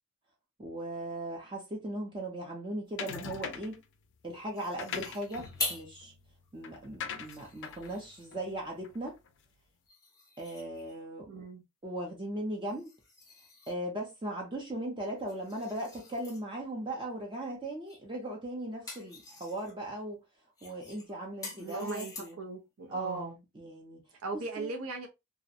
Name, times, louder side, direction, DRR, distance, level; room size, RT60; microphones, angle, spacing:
voice 1, 0.6-3.8 4.2-6.1 6.5-9.1 10.4-11.4 11.8-12.9 13.7-20.2 20.6-22.4 22.9-24.0 24.6-24.7, right 1 dB, 20° right, 0.5 m, -38 dB
sound 1, 3.0-3.8 4.6-9.3, left 7 dB, 55° left, 0.4 m, -43 dB
sound 2, 4.5-6.0 6.5-6.6 7.1-8.4 9.9-11.1 12.7-13.9 15.1-16.4 17.9-18.1 18.5-19.8 20.6-22.5, left 3 dB, 15° left, 0.7 m, -44 dB
voice 2, 11.3-11.6 21.6-23.3 24.2-25.1, right 3 dB, 70° right, 0.5 m, -39 dB
2.4 x 2.1 x 2.6 m
head